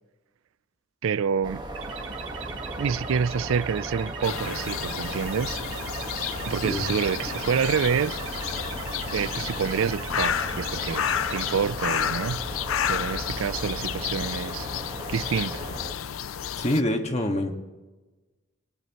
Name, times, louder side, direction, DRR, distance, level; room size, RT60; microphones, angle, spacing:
voice 1, 1.0-1.6 2.8-5.6 6.4-8.2 9.1-11.0 11.3-12.4 12.9-14.7 15.1-15.6, right 6 dB, 85° right, 0.4 m, -27 dB
sound 1, 1.4-15.9, right 1 dB, 20° right, 1.4 m, -37 dB
sound 2, 1.7-11.5, right 5 dB, 65° right, 2.2 m, -38 dB
sound 3, 4.2-16.8, left 9 dB, 90° left, 0.5 m, -31 dB
voice 2, 16.6-17.5, left 1 dB, 35° left, 1.7 m, -25 dB
22.5 x 19.5 x 3.0 m
head